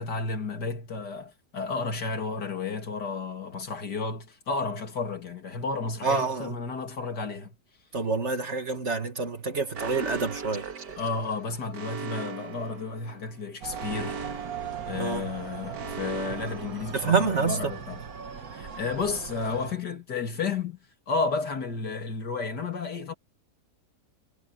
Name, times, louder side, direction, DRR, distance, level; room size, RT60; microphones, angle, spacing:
voice 1, 0.0-7.5 11.0-14.4 14.8-18.0 18.5-20.8 21.1-23.1, left 4 dB, 75° left, 3.2 m, -32 dB
voice 2, 6.0-6.5 7.9-10.7 14.9-15.3 16.9-17.7, right 4 dB, 45° right, 2.0 m, -27 dB
Alarm, 9.7-17.5, right 5 dB, 80° right, 2.3 m, -39 dB
sound 1, 13.6-19.7, right 7 dB, 60° right, 2.0 m, -39 dB
omnidirectional pair, 1.8 m